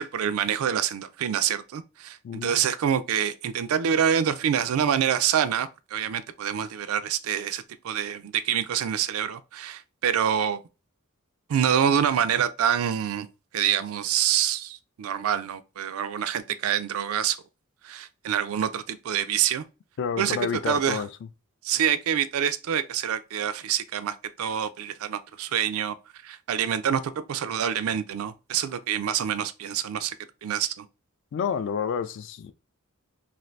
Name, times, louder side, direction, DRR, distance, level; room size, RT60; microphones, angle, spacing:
voice 1, 0.0-10.6 11.5-13.3 13.5-17.4 17.8-19.6 20.2-20.4 20.7-21.0 21.6-26.0 26.2-30.2 30.4-30.9, right 9 dB, 75° right, 0.4 m, -26 dB
voice 2, 2.2-2.6 20.0-21.1 31.3-32.5, left 7 dB, 60° left, 0.3 m, -29 dB
2.6 x 2.5 x 3.1 m
head